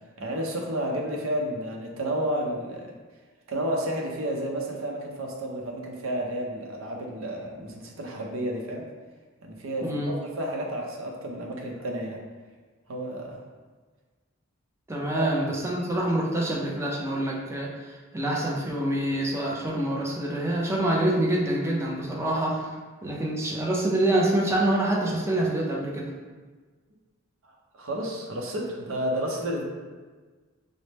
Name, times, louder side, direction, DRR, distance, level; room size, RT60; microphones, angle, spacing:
voice 1, 0.2-2.9 3.5-8.9 9.4-12.2 12.9-13.4 15.1-15.3 27.4-29.6, right 1 dB, 80° right, 0 dB, 0.6 m, -31 dB
voice 2, 9.8-10.1 14.9-22.7 23.0-26.1, right 1 dB, 15° right, -3 dB, 0.5 m, -26 dB
4.1 x 2.1 x 3.2 m, 1.4 s
head